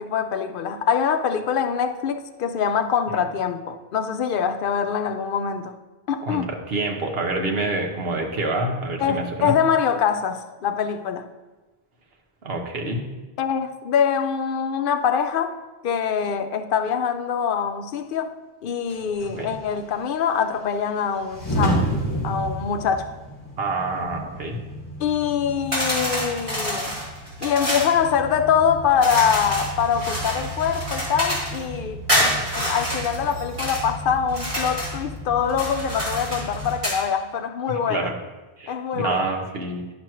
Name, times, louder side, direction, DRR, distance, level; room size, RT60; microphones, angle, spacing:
voice 1, 0.0-5.8 6.1-6.5 9.0-11.3 13.4-15.6 15.8-21.9 22.2-23.1 25.0-27.0 27.4-38.1 38.7-39.3, left 7 dB, 60° left, 0.6 m, -24 dB
voice 2, 6.2-9.5 12.4-13.0 19.4-19.5 23.6-24.6 32.1-32.3 37.9-38.1 38.6-39.8, right 2 dB, 60° right, 1.2 m, -27 dB
sound 1, 18.9-36.8, equal, 30° left, 2.9 m, -33 dB
sound 2, 25.7-27.9 29.0-31.6 32.1-33.8 34.3-35.0 35.5-37.0, equal, 30° right, 2.4 m, -27 dB
10.0 x 6.0 x 3.0 m
omnidirectional pair, 1.1 m